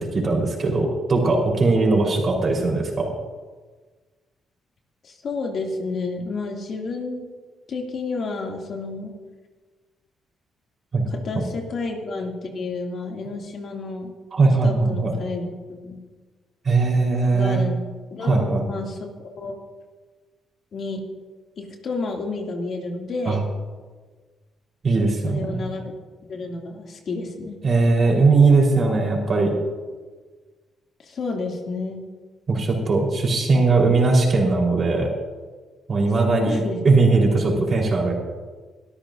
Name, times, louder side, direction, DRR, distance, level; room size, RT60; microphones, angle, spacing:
voice 1, 0.0-3.1 10.9-11.0 11.3-11.4 14.3-15.1 16.6-17.6 18.2-18.6 23.3-23.4 24.8-25.6 27.6-29.5 32.5-35.1 35.9-38.1, right 3 dB, 45° right, -1 dB, 4.1 m, -19 dB
voice 2, 5.0-7.3 7.7-9.1 11.1-14.1 14.6-16.0 17.3-17.8 18.1-19.5 20.7-21.0 21.6-23.5 25.3-26.0 26.3-27.6 31.0-32.0 36.3-36.8, left 3 dB, 55° left, 0 dB, 2.5 m, -30 dB
23.5 x 13.0 x 2.7 m, 1.4 s
cardioid pair, 90°, 0 cm